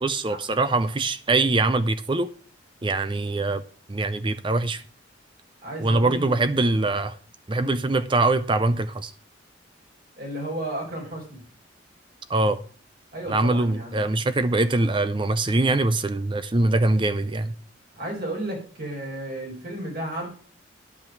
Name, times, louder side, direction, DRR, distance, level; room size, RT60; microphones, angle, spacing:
voice 1, 0.0-2.3 2.8-3.6 3.9-4.8 5.8-7.2 7.5-9.1 12.3-12.6 13.3-17.5, right 2 dB, 25° right, 0.5 m, -23 dB
voice 2, 5.6-6.4 7.5-7.8 10.2-11.4 13.1-14.1 17.9-20.3, right 1 dB, 50° right, 4.4 m, -33 dB
10.5 x 5.8 x 7.7 m
head